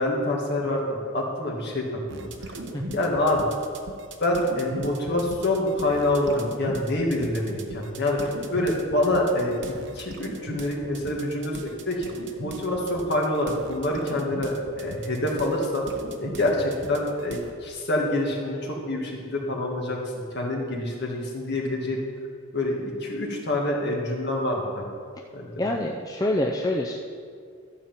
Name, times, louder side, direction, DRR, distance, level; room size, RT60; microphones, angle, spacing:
voice 1, 0.0-2.5 2.9-3.5 4.2-12.0 12.4-15.8 16.2-20.0 20.3-22.0 22.5-24.9 25.3-25.5, left 1 dB, 50° left, -1 dB, 1.9 m, -26 dB
sound 1, 2.1-17.5, right 2 dB, 60° right, 0.8 m, -39 dB
voice 2, 25.6-27.0, left 1 dB, 15° left, 0 dB, 0.5 m, -26 dB
12.5 x 4.9 x 7.4 m, 2.2 s
head